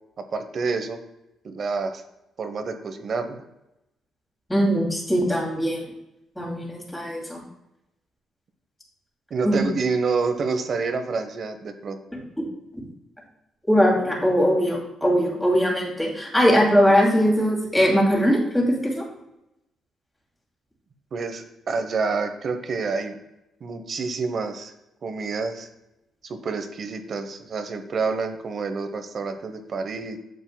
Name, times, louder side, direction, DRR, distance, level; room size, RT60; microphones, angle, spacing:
voice 1, 0.3-1.0 1.4-2.0 2.4-3.4 9.3-12.0 21.1-23.2 23.6-24.7 25.0-25.7 26.2-30.2, right 4 dB, 50° right, 8 dB, 0.9 m, -28 dB
voice 2, 4.5-5.8 6.4-7.4 9.4-9.7 12.1-12.4 13.7-19.0, equal, 5° left, -2 dB, 2.5 m, -21 dB
9.1 x 6.9 x 2.2 m, 0.90 s
cardioid pair, 90°, 0 cm